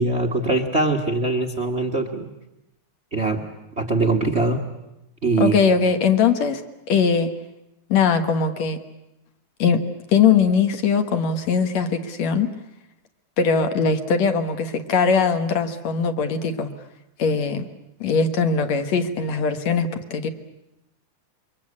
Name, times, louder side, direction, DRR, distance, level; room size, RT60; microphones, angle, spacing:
voice 1, 0.0-2.3 3.1-3.4 3.8-4.6 5.2-5.6, right 3 dB, 40° right, 4 dB, 0.9 m, -22 dB
voice 2, 5.4-6.6 6.9-7.3 7.9-8.8 9.6-12.5 13.4-16.7 17.2-17.7 18.0-20.3, left 5 dB, 65° left, 7 dB, 2.5 m, -20 dB
27.5 x 23.5 x 8.6 m, 0.90 s
omnidirectional pair, 3.6 m